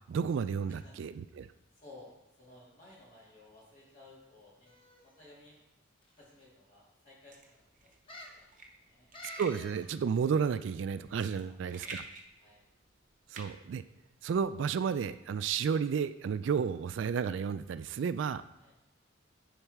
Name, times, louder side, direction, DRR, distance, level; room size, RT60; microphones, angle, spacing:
voice 1, 0.1-1.5 9.4-12.0 13.3-13.8 14.2-18.4, right 6 dB, 60° right, 13 dB, 0.3 m, -32 dB
voice 2, 1.7-4.7 5.0-5.6 6.1-8.5 8.8-9.1 11.3-11.9 12.4-12.6 18.6-18.7, left 2 dB, 40° left, -6 dB, 3.0 m, -57 dB
sound 1, 4.7-5.2 6.0-6.1 6.4-6.5 8.1-8.4 9.1-9.9 10.2-10.3, left 1 dB, 25° left, 0.9 m, -49 dB
sound 2, 7.3-14.5, right 3 dB, 40° right, 0.8 m, -49 dB
9.0 x 4.0 x 4.7 m, 0.94 s
head